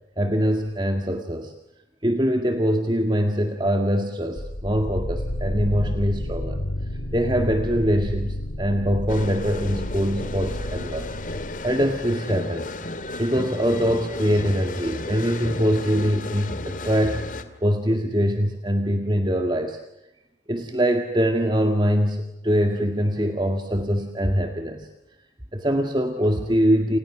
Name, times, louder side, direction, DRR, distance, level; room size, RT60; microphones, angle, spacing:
voice 1, 0.2-1.5 2.0-6.6 7.1-11.4 11.6-19.8 20.5-24.9 25.5-27.0, equal, 25° right, 4 dB, 2.0 m, -23 dB
sound 1, 4.4-12.2, left 1 dB, 80° left, 3.7 m, -30 dB
sound 2, 9.1-17.4, left 2 dB, 45° left, 2.2 m, -34 dB
29.5 x 29.0 x 6.2 m, 0.89 s
head